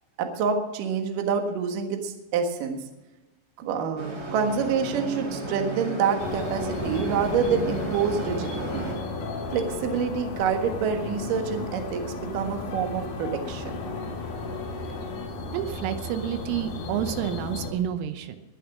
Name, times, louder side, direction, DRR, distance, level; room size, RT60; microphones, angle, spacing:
voice 1, 0.2-2.8 3.6-8.9 9.5-13.8, right 6 dB, 60° right, 4 dB, 2.3 m, -27 dB
sound 1, 4.0-8.9, right 4 dB, 40° right, 1.4 m, -34 dB
sound 2, 5.4-15.3, left 8 dB, 70° left, 2.9 m, -41 dB
sound 3, 6.2-17.7, left 2 dB, 55° left, 3.4 m, -35 dB
voice 2, 15.5-18.4, right 10 dB, 85° right, 10 dB, 3.5 m, -29 dB
21.0 x 7.4 x 6.1 m, 1.0 s
omnidirectional pair, 5.7 m